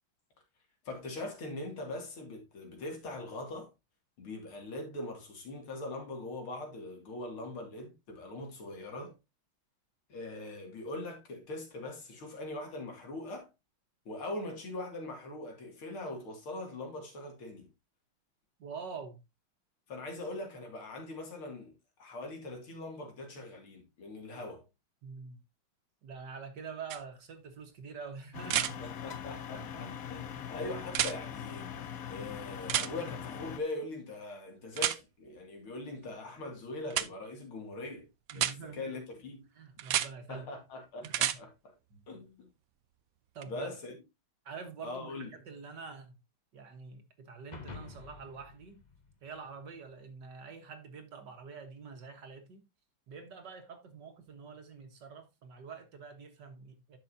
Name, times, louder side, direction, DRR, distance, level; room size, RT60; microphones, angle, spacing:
voice 1, 0.8-3.7 4.2-9.1 10.1-13.5 14.0-17.7 19.9-21.7 22.0-24.7 28.8-39.4 40.3-41.8 42.1-42.5 43.4-43.9 44.8-45.3, left 2 dB, 85° left, 3.3 m, -42 dB
voice 2, 18.6-19.2 25.0-25.4 26.0-28.8 29.5-30.5 38.3-38.9 39.6-40.5 41.0-41.3 41.9-42.0 43.3-43.7 44.5-46.2 46.5-48.8 49.2-52.6 53.1-57.0, right 5 dB, 55° right, 1.9 m, -46 dB
sound 1, 26.9-27.0 28.4-28.7 30.9-31.1 32.7-32.9 34.8-35.0 36.9-37.1 38.3-38.5 39.8-40.1 41.0-41.4 43.4-43.5, right 11 dB, 85° right, 0.7 m, -29 dB
sound 2, 28.3-33.6, left 9 dB, 60° left, 0.9 m, -42 dB
sound 3, 47.5-50.0, left 4 dB, 25° left, 1.0 m, -49 dB
10.5 x 6.7 x 2.7 m
omnidirectional pair, 2.3 m